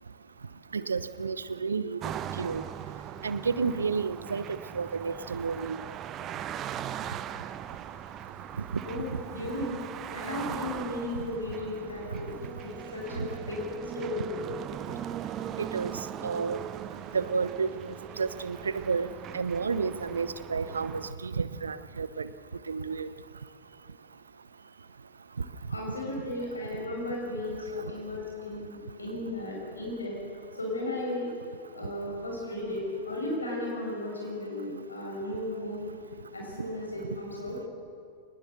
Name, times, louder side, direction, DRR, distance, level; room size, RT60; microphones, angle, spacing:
voice 1, 0.7-2.0 2.3-2.6 3.2-5.8 9.1-9.2 12.1-12.2 15.6-15.9 16.2-16.6 17.1-17.7 18.2-19.1 19.3-22.3 22.7-23.1, right 5 dB, 75° right, 15 dB, 0.7 m, -31 dB
sound 1, 2.0-21.1, right 10 dB, 30° right, 0.8 m, -40 dB
voice 2, 8.8-9.8 10.1-13.2 13.5-13.6 14.0-14.3 25.7-30.2 30.6-31.3 31.7-35.9 36.3-37.6, left 1 dB, 80° left, -2 dB, 7.3 m, -35 dB
22.0 x 19.5 x 6.8 m, 2.4 s
figure-of-eight pair, 90°, 0 cm